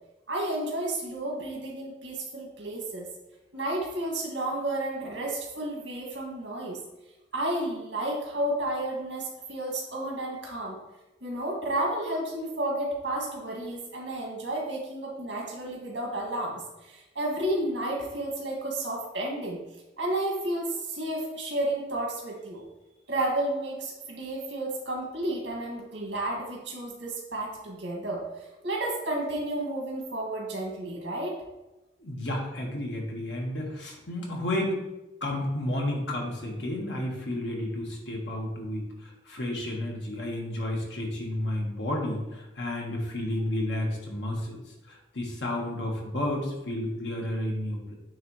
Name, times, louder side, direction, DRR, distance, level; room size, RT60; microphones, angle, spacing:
voice 1, 0.3-3.1 3.5-6.8 7.3-10.8 11.2-16.6 16.9-19.6 20.0-22.6 23.1-28.2 28.6-31.4, right 1 dB, 75° right, -2 dB, 2.1 m, -31 dB
voice 2, 32.0-34.8 35.2-44.6 44.9-47.9, left 1 dB, 75° left, -1 dB, 1.4 m, -31 dB
9.2 x 3.4 x 3.1 m, 0.99 s
head